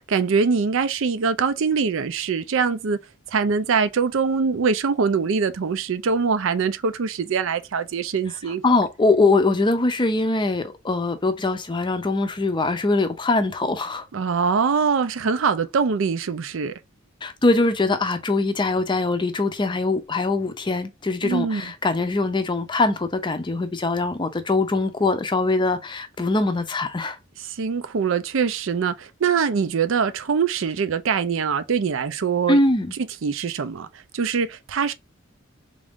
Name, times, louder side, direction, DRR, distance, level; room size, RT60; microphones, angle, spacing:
voice 1, 0.0-3.0 3.3-8.6 14.1-16.7 21.2-21.7 27.4-32.6 32.9-34.9, right 5 dB, 65° right, 0.5 m, -23 dB
voice 2, 8.6-14.0 17.2-27.2 32.5-32.9, left 2 dB, 25° left, 0.5 m, -22 dB
3.6 x 2.5 x 3.6 m
head